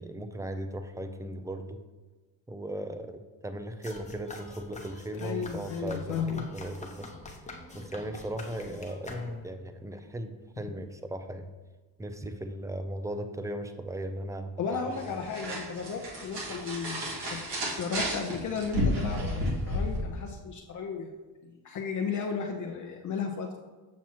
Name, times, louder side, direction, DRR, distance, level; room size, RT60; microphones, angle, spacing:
voice 1, 0.0-1.8 2.5-6.2 6.5-7.1 7.7-11.5 12.0-14.8, right 1 dB, 10° right, 9 dB, 0.4 m, -37 dB
sound 1, 3.8-9.6, left 2 dB, 15° left, 0.9 m, -43 dB
voice 2, 5.2-6.5 14.6-17.0 17.3-17.4 17.8-21.1 21.4-23.6, left 6 dB, 45° left, 2 dB, 0.7 m, -34 dB
sound 2, 14.9-20.0, equal, 70° right, 1.9 m, -32 dB
7.3 x 6.0 x 3.0 m, 1.3 s
cardioid pair, 100°, 41 cm